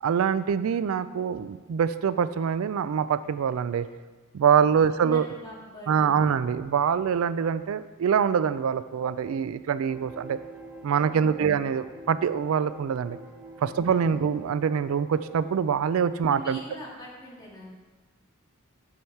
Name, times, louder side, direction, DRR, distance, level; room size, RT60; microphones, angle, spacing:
voice 1, 0.0-3.9 4.3-5.3 5.9-10.4 10.8-13.2 13.6-16.6, right 7 dB, 85° right, 14 dB, 0.3 m, -24 dB
voice 2, 5.0-6.5 13.7-14.2 16.2-17.7, equal, 20° left, -5 dB, 2.2 m, -44 dB
sound 1, 9.9-15.7, right 1 dB, 10° right, 0.7 m, -46 dB
8.5 x 7.2 x 4.5 m, 1.3 s
head